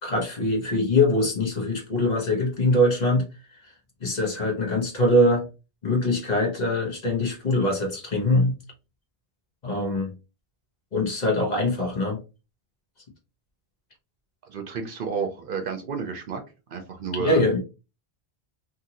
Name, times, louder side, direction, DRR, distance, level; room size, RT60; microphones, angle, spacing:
voice 1, 0.0-3.3 4.0-5.5 5.8-8.5 9.6-10.1 10.9-12.2 17.2-17.6, left 1 dB, 45° left, 0 dB, 1.0 m, -23 dB
voice 2, 14.4-16.4 16.7-17.4, right 5 dB, 60° right, 5 dB, 0.7 m, -31 dB
2.7 x 2.6 x 2.8 m, 0.29 s
omnidirectional pair, 1.1 m